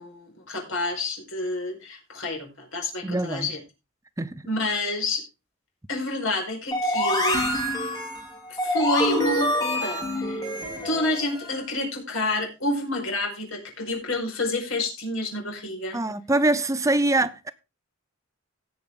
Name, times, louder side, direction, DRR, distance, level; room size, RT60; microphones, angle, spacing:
voice 1, 0.0-3.6 4.4-5.2 5.9-7.5 8.5-10.5 10.8-16.0, left 2 dB, 65° left, 4.7 m, -29 dB
voice 2, 3.0-3.5 4.2-4.4 15.9-17.5, right 2 dB, 15° right, 0.5 m, -24 dB
sound 1, 6.7-11.6, left 1 dB, 15° left, 4.2 m, -26 dB
17.5 x 6.7 x 3.7 m
head